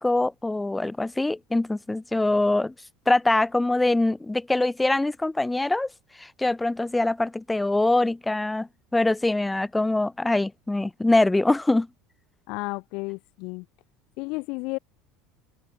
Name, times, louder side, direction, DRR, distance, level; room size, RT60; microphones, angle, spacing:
voice 1, 0.0-2.7 3.1-5.9 6.2-11.9, left 2 dB, 10° left, 1.4 m, -23 dB
voice 2, 12.5-13.6 14.2-14.8, left 27 dB, 65° left, 0.8 m, -32 dB
open air
hypercardioid pair, 75°, 0 cm